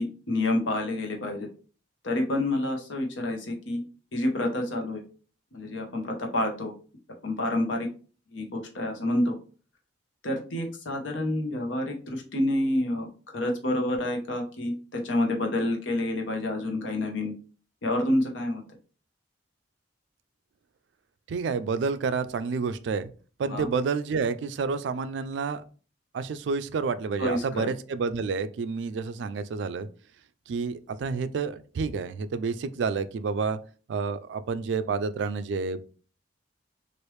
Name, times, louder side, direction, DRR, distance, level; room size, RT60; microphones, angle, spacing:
voice 1, 0.0-1.5 2.0-3.8 4.1-5.0 5.5-6.7 7.2-7.9 8.3-9.3 10.2-13.1 13.3-17.3 17.8-18.6 23.5-23.7 27.2-27.7, left 1 dB, 80° left, 2 dB, 0.9 m, -28 dB
voice 2, 21.3-23.1 23.4-25.6 26.1-29.9 30.5-33.6 33.9-35.8, right 5 dB, 70° right, 13 dB, 0.3 m, -29 dB
3.2 x 2.5 x 3.1 m, 0.38 s
head